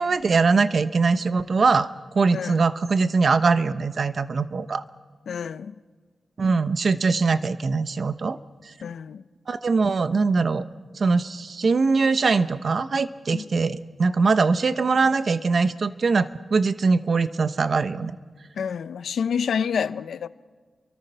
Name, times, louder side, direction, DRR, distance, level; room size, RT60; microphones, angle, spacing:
voice 1, 0.0-1.9 2.1-4.8 6.4-8.4 9.5-10.7 10.9-18.1, right 4 dB, 55° right, 0.9 m, -22 dB
voice 2, 2.3-2.7 5.3-5.7 8.8-9.2 13.3-13.5 18.6-20.3, left 7 dB, 90° left, 0.7 m, -28 dB
29.5 x 24.0 x 5.6 m
cardioid pair, 85°, 0 cm